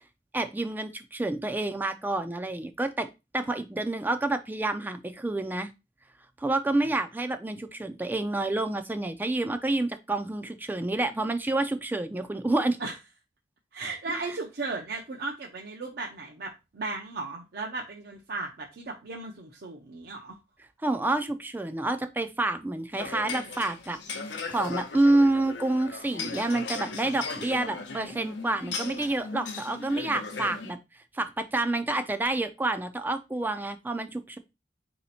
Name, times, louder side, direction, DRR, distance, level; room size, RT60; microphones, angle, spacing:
voice 1, 0.3-5.7 6.4-12.8 14.1-14.4 20.8-24.0 24.5-30.8 31.1-34.4, right 2 dB, 10° right, 9 dB, 0.3 m, -28 dB
voice 2, 13.7-20.4, right 3 dB, 60° right, 0 dB, 0.6 m, -36 dB
sound 1, 23.0-30.7, left 4 dB, 80° left, 0.7 m, -37 dB
4.2 x 2.8 x 4.0 m, 0.25 s
head